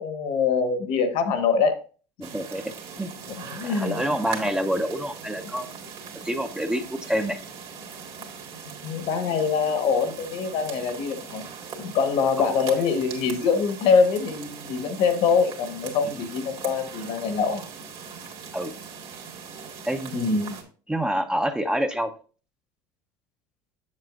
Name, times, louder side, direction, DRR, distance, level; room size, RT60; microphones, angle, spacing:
voice 1, 0.0-1.7 3.4-4.0 8.8-11.4 11.8-17.6 20.1-20.6, left 5 dB, 65° left, 8 dB, 1.2 m, -24 dB
voice 2, 2.2-3.1 3.6-5.7 6.2-7.4 12.4-12.5 18.5-18.7 19.8-20.4 20.9-22.1, equal, 5° right, 7 dB, 0.6 m, -27 dB
sound 1, 2.2-20.6, right 6 dB, 55° right, 1.9 m, -40 dB
7.5 x 7.2 x 2.5 m, 0.38 s
supercardioid pair, 110°, 11 cm